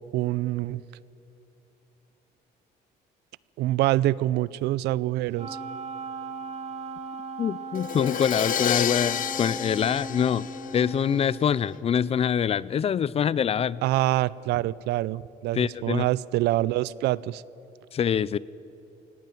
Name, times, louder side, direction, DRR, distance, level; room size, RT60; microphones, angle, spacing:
voice 1, 0.1-0.8 3.6-5.6 13.8-17.4, right 15 dB, 80° right, 22 dB, 0.5 m, -25 dB
Wind instrument woodwind instrument, 5.3-11.4, right 3 dB, 40° right, 4.4 m, -37 dB
voice 2, 7.4-10.5 10.7-13.8 15.5-16.1 17.9-18.4, left 8 dB, 35° left, 21 dB, 0.5 m, -25 dB
Crash cymbal, 7.7-11.5, left 10 dB, 55° left, 0.8 m, -30 dB
19.0 x 17.5 x 9.2 m, 2.9 s
cardioid pair, 110°, 17 cm